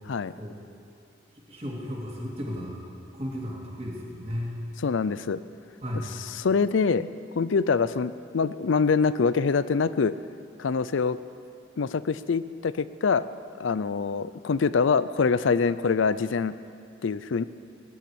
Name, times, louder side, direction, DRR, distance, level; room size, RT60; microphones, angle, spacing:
voice 1, 1.5-2.8 3.1-4.6 5.8-6.1, equal, 35° right, -4 dB, 3.0 m, -34 dB
voice 2, 4.8-5.4 6.4-7.1 7.4-10.1 10.6-11.2 11.8-13.2 13.6-16.6 17.0-17.4, left 5 dB, 85° left, 15 dB, 0.5 m, -24 dB
19.0 x 7.0 x 9.9 m, 2.5 s
head